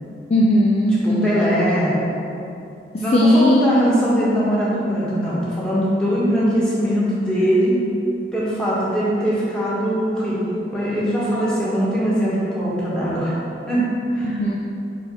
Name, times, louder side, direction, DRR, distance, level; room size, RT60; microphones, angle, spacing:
voice 1, 0.3-1.4 2.9-3.6 14.2-14.6, left 1 dB, 35° left, -2 dB, 0.3 m, -17 dB
voice 2, 1.0-2.0 3.0-7.8 8.3-10.4 10.7-13.3 13.7-14.4, equal, 5° left, -9 dB, 1.4 m, -21 dB
4.5 x 4.3 x 5.6 m, 2.7 s
head